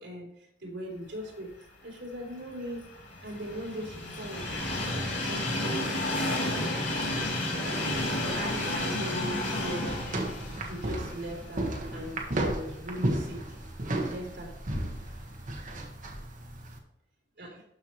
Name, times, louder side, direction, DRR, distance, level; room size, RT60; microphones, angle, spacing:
voice 1, 0.0-2.8 3.2-4.5 4.9-5.9 7.0-7.1 7.5-7.9 8.2-10.0 10.7-13.4 13.9-14.5 17.4-17.6, equal, 65° right, -5 dB, 3.2 m, -39 dB
Train, 2.2-12.4 12.8-12.9 14.0-14.1, left 1 dB, 75° left, 2.8 m, -32 dB
sound 1, 7.9-16.8, right 1 dB, 45° right, 1.4 m, -34 dB
13.0 x 4.5 x 3.1 m, 0.82 s
head